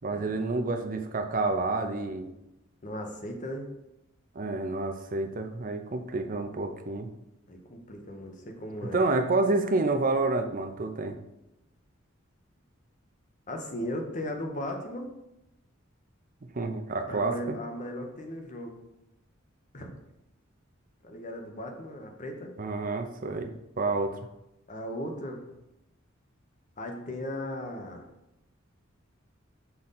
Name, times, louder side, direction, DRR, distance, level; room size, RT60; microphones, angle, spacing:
voice 1, 0.0-2.3 4.3-7.1 8.9-11.2 16.5-17.6 22.6-24.2, right 3 dB, 40° right, 6 dB, 0.6 m, -29 dB
voice 2, 2.8-3.7 7.5-9.0 13.5-15.1 17.1-18.8 19.7-19.9 21.0-22.5 24.7-25.4 26.8-28.1, left 1 dB, 40° left, 3 dB, 1.0 m, -37 dB
6.0 x 3.9 x 5.6 m, 0.88 s
head